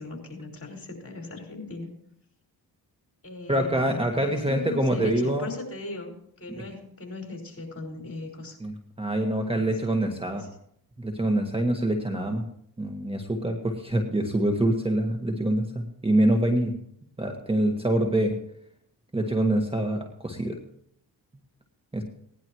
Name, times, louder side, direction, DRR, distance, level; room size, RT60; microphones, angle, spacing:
voice 1, 0.0-1.9 3.2-8.6 10.2-10.5 12.2-12.4, left 3 dB, 35° left, 2 dB, 5.5 m, -39 dB
voice 2, 3.5-5.5 6.6-6.7 8.6-10.4 11.0-12.5 12.8-16.7 17.2-18.4 19.1-20.6 21.9-22.0, right 1 dB, 15° right, 3 dB, 1.7 m, -25 dB
18.5 x 11.0 x 3.2 m, 0.70 s
cardioid pair, 60°, 41 cm